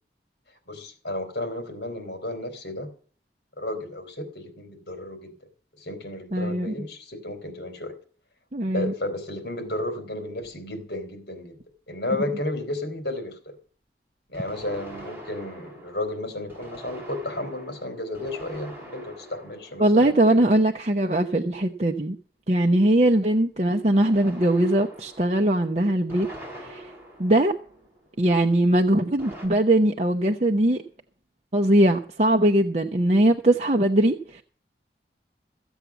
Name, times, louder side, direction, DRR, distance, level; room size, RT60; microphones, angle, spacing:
voice 1, 0.7-2.9 3.6-5.3 5.8-7.9 8.6-11.6 11.9-13.5 14.3-20.4, left 1 dB, 65° left, 8 dB, 3.4 m, -33 dB
voice 2, 6.3-6.7 8.5-8.9 19.8-22.2 22.5-26.3 26.6-26.9 27.2-27.5 28.2-30.8 31.5-34.4, right 1 dB, 40° right, 3 dB, 0.8 m, -21 dB
sound 1, 10.4-10.5 14.3-20.8 24.0-28.2 29.2-29.5, right 1 dB, 10° right, 4.9 m, -44 dB
15.0 x 8.1 x 7.2 m, 0.43 s
head